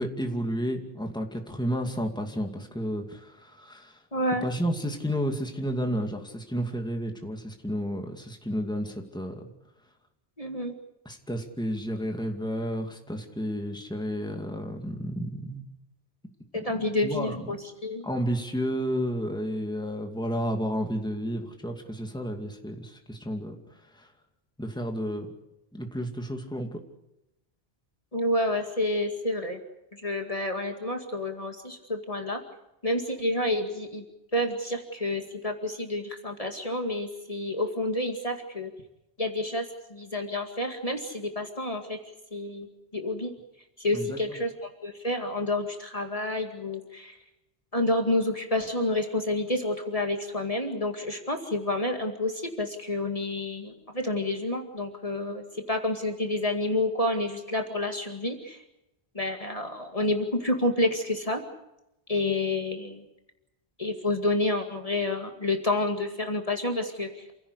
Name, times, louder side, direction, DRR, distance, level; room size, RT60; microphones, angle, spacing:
voice 1, 0.0-4.0 4.4-9.4 11.0-15.6 16.7-17.4 18.0-23.6 23.9-24.1 24.6-25.3 25.7-26.8 43.9-44.4, equal, 5° left, 3 dB, 2.5 m, -31 dB
voice 2, 4.1-4.5 10.4-10.7 16.5-18.1 28.1-29.6 29.9-32.4 32.8-34.0 34.3-38.7 39.2-42.0 42.3-42.7 42.9-43.3 43.8-47.2 47.7-58.6 59.1-61.4 62.1-63.0 63.8-67.2, left 1 dB, 35° left, 4 dB, 2.3 m, -29 dB
28.5 x 16.5 x 8.3 m, 0.89 s
omnidirectional pair, 1.0 m